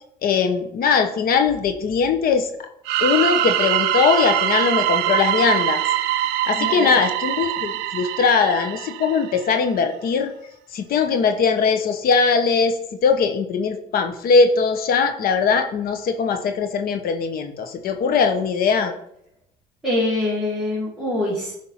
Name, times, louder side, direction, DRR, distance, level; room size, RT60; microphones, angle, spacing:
voice 1, 0.2-2.5 3.0-5.8 6.4-10.3 10.7-12.7 13.0-18.9, left 5 dB, 60° left, 7 dB, 1.0 m, -20 dB
sound 1, 2.8-9.5, right 12 dB, 90° right, 0.6 m, -23 dB
voice 2, 6.6-7.0 19.8-21.5, left 1 dB, ahead, -8 dB, 2.7 m, -24 dB
9.5 x 3.5 x 5.7 m, 0.72 s
cardioid pair, 110°, 17 cm